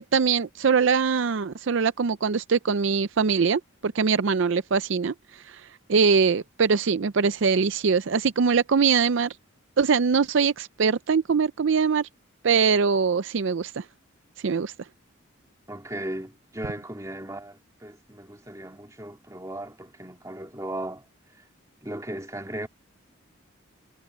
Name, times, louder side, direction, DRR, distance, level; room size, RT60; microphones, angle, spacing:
voice 1, 0.0-5.1 5.5-5.6 5.9-9.3 9.8-12.1 12.4-13.8 14.4-14.7, right 5 dB, 65° right, 0.5 m, -22 dB
voice 2, 15.7-21.1 21.8-22.7, right 1 dB, 15° right, 2.5 m, -36 dB
head